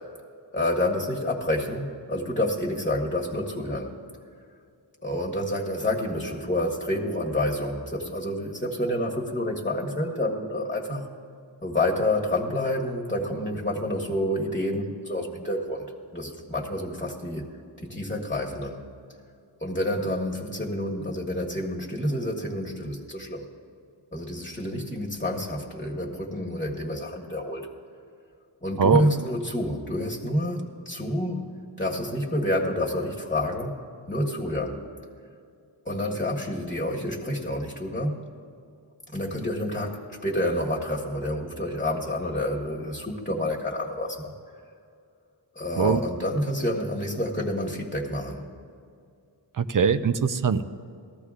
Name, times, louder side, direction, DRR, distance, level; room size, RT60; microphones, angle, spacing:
voice 1, 0.5-3.9 5.0-11.0 11.6-15.9 16.1-17.4 17.8-18.8 19.6-23.5 24.1-27.7 28.6-31.4 31.8-33.7 34.1-34.8 35.8-38.2 39.1-44.3 45.5-48.4, left 1 dB, 15° left, -2 dB, 1.5 m, -28 dB
voice 2, 49.6-50.6, right 6 dB, 45° right, 10 dB, 0.6 m, -21 dB
19.5 x 14.0 x 2.5 m, 2.4 s
wide cardioid pair, 75°, 46 cm